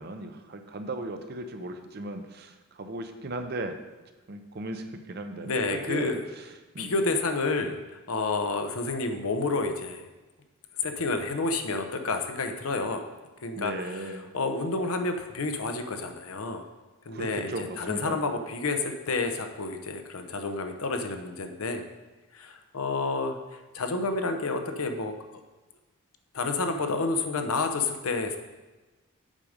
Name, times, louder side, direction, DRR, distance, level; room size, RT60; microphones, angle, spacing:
voice 1, 0.0-3.8 4.3-6.4 6.7-7.1 13.6-14.3 17.1-18.2, right 2 dB, 45° right, 7 dB, 0.6 m, -36 dB
voice 2, 5.4-6.2 6.8-10.0 10.8-13.0 13.4-16.7 17.1-21.8 22.3-25.1 26.3-28.4, left 3 dB, 80° left, 6 dB, 0.8 m, -30 dB
7.5 x 5.1 x 5.0 m, 1.2 s
head